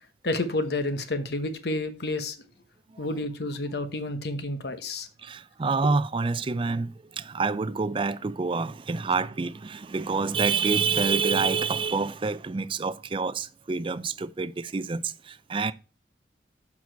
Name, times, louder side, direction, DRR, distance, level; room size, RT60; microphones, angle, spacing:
voice 1, 0.2-2.4 3.0-5.1, left 2 dB, 60° left, 1.0 m, -30 dB
voice 2, 5.2-15.7, right 4 dB, 30° right, 0.4 m, -27 dB
7.2 x 6.0 x 4.5 m
head